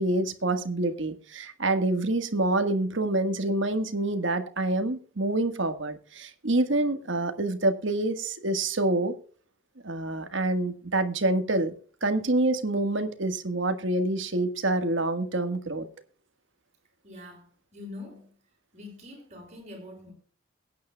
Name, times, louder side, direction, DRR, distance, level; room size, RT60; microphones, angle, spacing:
voice 1, 0.0-9.1 9.8-11.7 12.0-15.9, right 2 dB, 65° right, 1.5 m, -27 dB
voice 2, 17.0-18.3 18.7-20.1, left 2 dB, 35° right, 6.1 m, -44 dB
22.0 x 9.5 x 2.2 m
head